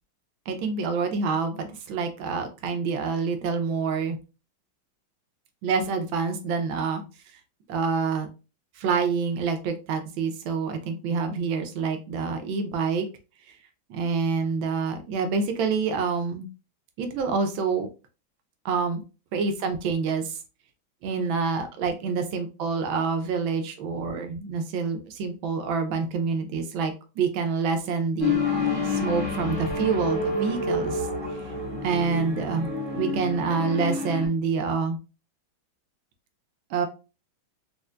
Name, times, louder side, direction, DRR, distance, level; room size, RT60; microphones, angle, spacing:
voice 1, 0.5-4.2 5.6-7.0 7.7-8.3 8.8-13.1 13.9-16.5 17.0-17.9 18.6-19.0 19.3-20.4 21.0-28.4 28.8-31.1 31.4-31.5 31.8-35.0 36.7-36.9, right 5 dB, 75° right, 7 dB, 1.4 m, -27 dB
sound 1, 28.2-34.3, left 3 dB, 20° right, 0.8 m, -28 dB
4.3 x 2.5 x 2.3 m, 0.31 s
omnidirectional pair, 2.3 m